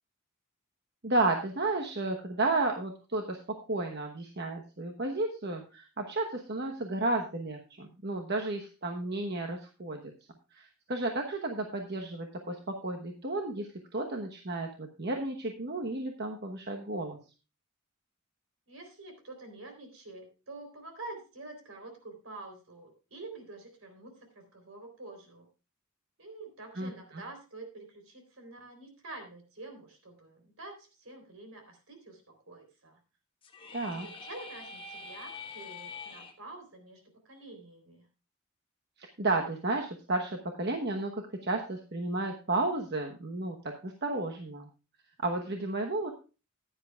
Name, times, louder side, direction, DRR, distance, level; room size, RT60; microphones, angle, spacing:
voice 1, 1.0-3.4 3.7-10.0 10.5-12.6 12.8-17.2 26.8-26.9 33.7-34.1 39.0-44.7 45.2-46.1, right 2 dB, 50° right, 3 dB, 1.1 m, -32 dB
voice 2, 18.7-25.5 26.2-33.0 33.9-38.1, right 2 dB, 70° right, 5 dB, 3.7 m, -47 dB
sound 1, 33.4-36.3, left 4 dB, 25° left, 1.3 m, -45 dB
15.5 x 10.0 x 2.4 m, 0.31 s
head